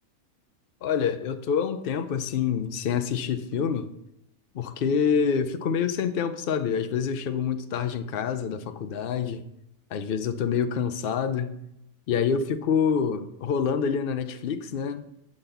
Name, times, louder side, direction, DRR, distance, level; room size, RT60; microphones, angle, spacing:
voice 1, 0.8-3.9 4.5-9.4 9.9-11.5 12.1-15.0, left 7 dB, 65° left, 0.5 m, -27 dB
7.2 x 4.0 x 6.6 m
omnidirectional pair, 1.5 m